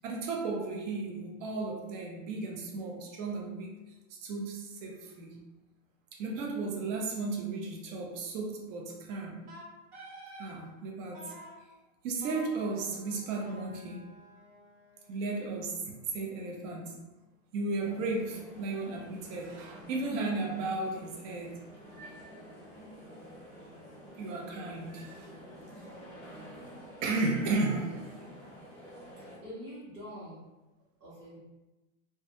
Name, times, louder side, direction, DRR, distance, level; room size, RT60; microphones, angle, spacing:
voice 1, 0.0-3.7 4.1-5.4 6.1-9.4 10.4-11.3 12.0-14.0 15.1-17.0 17.5-21.6 22.0-22.3 24.2-25.3 27.0-28.1, right 3 dB, 60° right, -1 dB, 0.7 m, -34 dB
Wind instrument woodwind instrument, 9.5-10.6 11.1-11.6 12.2-15.2, right 1 dB, 85° right, 1.4 m, -50 dB
sound 1, 17.8-29.4, equal, 5° left, 0.4 m, -50 dB
voice 2, 29.2-30.4 31.0-31.4, equal, 35° right, -9 dB, 0.8 m, -45 dB
2.2 x 2.2 x 2.8 m, 1.1 s
supercardioid pair, 135°, 43 cm